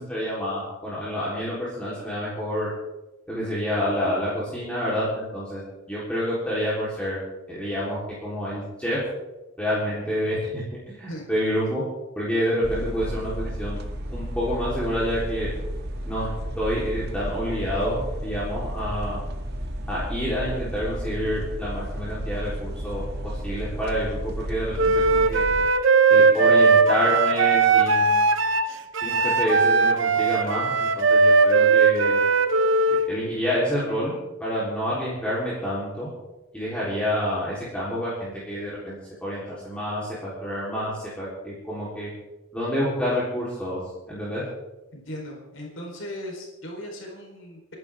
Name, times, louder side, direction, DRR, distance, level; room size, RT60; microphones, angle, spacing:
voice 1, 0.0-2.7 3.3-7.2 7.5-9.0 9.6-11.8 12.2-13.8 14.1-15.5 16.0-16.3 16.6-19.2 19.9-23.0 23.4-25.4 26.1-28.3 29.0-32.2 32.9-36.1 36.5-42.1 42.5-43.8 44.1-44.4, equal, 5° left, -9 dB, 3.9 m, -28 dB
sound 1, 12.6-25.7, equal, 50° right, 1.7 m, -32 dB
Wind instrument woodwind instrument, 24.8-33.1, right 4 dB, 70° right, 1.0 m, -19 dB
voice 2, 44.9-47.6, left 1 dB, 70° left, -1 dB, 4.3 m, -37 dB
30.0 x 11.0 x 3.7 m, 1.1 s
head